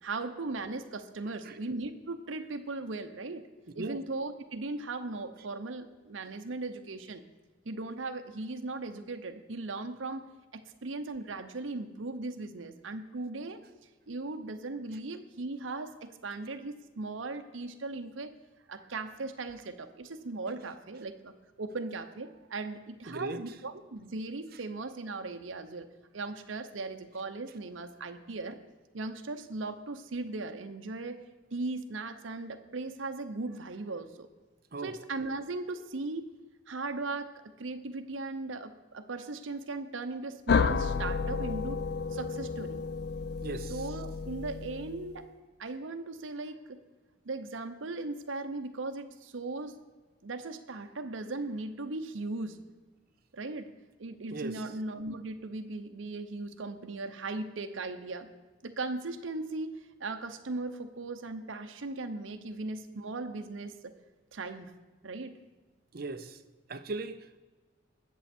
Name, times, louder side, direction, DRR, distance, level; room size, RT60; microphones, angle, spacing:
voice 1, 0.0-3.4 3.7-7.2 7.7-10.3 10.5-13.6 14.1-18.3 18.7-28.6 28.9-31.2 31.5-34.3 34.8-36.3 36.7-41.8 42.1-42.8 43.7-45.3 45.6-46.8 47.2-49.8 50.2-52.6 53.3-53.7 54.0-58.3 58.6-63.9 64.3-64.7 65.0-65.3, right 3 dB, 80° right, 6 dB, 0.8 m, -38 dB
voice 2, 23.1-23.4 34.7-34.9 43.4-43.8 54.3-54.6 65.9-66.4 66.7-67.4, right 3 dB, 50° right, 10 dB, 0.6 m, -38 dB
sound 1, 40.5-45.2, left 5 dB, 55° left, 0.4 m, -31 dB
20.0 x 7.1 x 4.3 m, 1.3 s
head